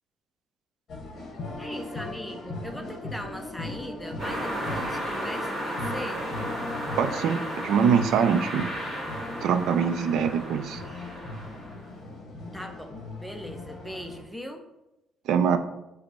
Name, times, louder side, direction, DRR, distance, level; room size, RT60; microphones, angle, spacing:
sound 1, 0.9-14.2, left 2 dB, 40° left, 0.9 m, -39 dB
voice 1, 1.6-6.2 12.5-12.9 13.2-14.6, equal, ahead, 4 dB, 0.4 m, -39 dB
sound 2, 4.2-11.8, equal, 15° right, 1.6 m, -34 dB
voice 2, 7.0-8.7 9.4-10.8 15.3-15.6, right 7 dB, 65° right, 10 dB, 0.3 m, -23 dB
5.1 x 2.0 x 4.6 m, 0.91 s
cardioid pair, 165°, 0 cm